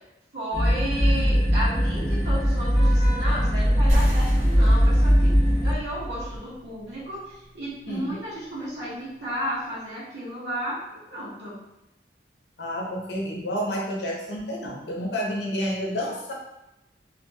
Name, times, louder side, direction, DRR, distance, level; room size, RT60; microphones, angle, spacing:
voice 1, 0.3-11.6, equal, 75° right, -9 dB, 1.0 m, -33 dB
sound 1, 0.5-5.7, equal, 5° left, 0.9 m, -20 dB
Vehicle horn car horn honking / Traffic noise roadway noise, 1.1-6.4, right 1 dB, 20° left, 0.4 m, -38 dB
sound 2, 3.9-9.0, right 1 dB, 45° right, 0.8 m, -35 dB
voice 2, 7.9-8.2 12.6-16.3, equal, 75° left, -2 dB, 0.7 m, -30 dB
2.9 x 2.5 x 2.2 m, 0.91 s
head